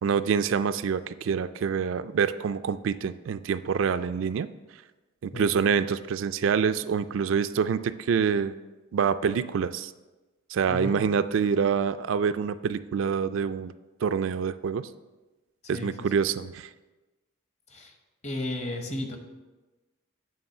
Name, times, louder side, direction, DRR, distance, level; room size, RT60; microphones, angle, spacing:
voice 1, 0.0-4.5 5.2-8.6 8.9-9.9 10.5-13.7 14.0-14.9 15.7-16.7, right 6 dB, 75° right, 12 dB, 0.3 m, -26 dB
voice 2, 10.7-11.0 15.7-16.1 17.7-17.9 18.2-19.2, left 1 dB, 35° left, 4 dB, 0.9 m, -34 dB
8.7 x 3.8 x 6.6 m, 1.2 s
head